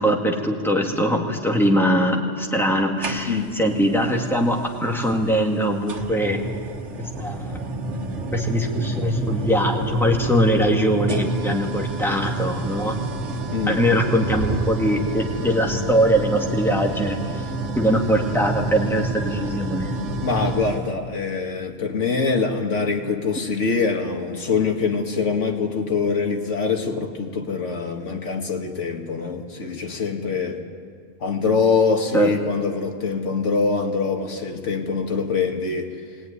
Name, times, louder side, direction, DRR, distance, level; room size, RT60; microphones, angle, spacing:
voice 1, 0.0-6.4 7.0-7.5 8.3-13.0 13.7-17.4 17.8-19.9 32.1-32.3, equal, ahead, 0 dB, 2.2 m, -21 dB
sound 1, 3.0-3.7 5.0-5.1 5.9-20.9, right 2 dB, 75° right, 1.8 m, -29 dB
voice 2, 3.3-3.6 13.5-13.8 20.2-30.6 31.2-35.9, left 4 dB, 80° left, 3 dB, 2.0 m, -24 dB
20.5 x 18.5 x 9.8 m, 2.1 s
omnidirectional pair, 1.2 m